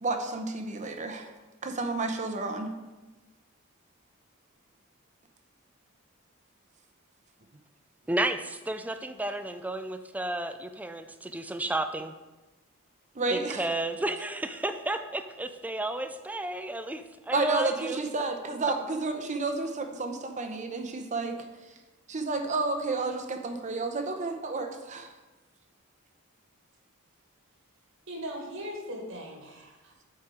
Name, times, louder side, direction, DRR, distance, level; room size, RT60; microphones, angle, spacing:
voice 1, 0.0-1.3 1.6-2.7 13.1-13.6 17.3-21.5 22.1-25.1, right 3 dB, 35° right, 6 dB, 0.7 m, -31 dB
voice 2, 8.1-12.1 13.3-18.0, right 1 dB, 5° right, 9 dB, 0.3 m, -32 dB
voice 3, 28.1-30.0, equal, 65° right, 0 dB, 1.7 m, -39 dB
8.5 x 4.4 x 4.9 m, 1.2 s
head